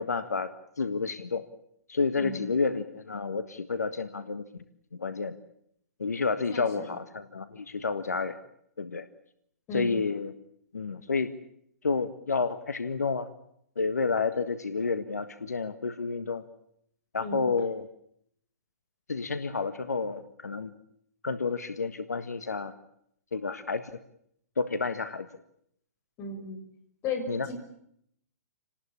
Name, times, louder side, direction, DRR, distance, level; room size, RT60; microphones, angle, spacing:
voice 1, 0.0-1.5 1.9-4.4 5.0-5.3 6.0-8.4 8.8-9.1 9.7-10.3 10.7-11.3 11.8-13.3 13.8-16.4 17.1-17.9 19.1-20.7 21.2-22.7 23.3-23.9 24.6-25.3 27.3-27.5, left 4 dB, 85° left, 11 dB, 1.6 m, -30 dB
voice 2, 2.2-2.5 6.5-7.0 9.7-10.0 17.2-17.4 26.2-26.6 27.0-27.5, left 3 dB, 30° left, 7 dB, 6.8 m, -35 dB
29.0 x 19.5 x 8.7 m, 0.74 s
hypercardioid pair, 125°, 8 cm